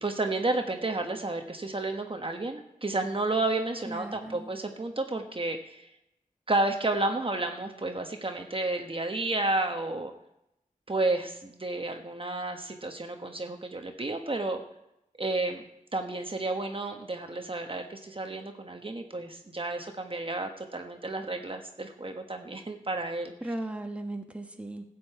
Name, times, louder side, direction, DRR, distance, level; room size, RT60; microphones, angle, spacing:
voice 1, 0.0-5.8 6.5-10.1 10.9-14.6 15.2-15.7 15.9-23.5, right 2 dB, 40° right, 4 dB, 1.2 m, -31 dB
voice 2, 3.9-4.5 23.4-24.8, right 1 dB, 10° right, 4 dB, 1.3 m, -37 dB
14.5 x 5.4 x 8.0 m, 0.85 s
wide cardioid pair, 60°, 15 cm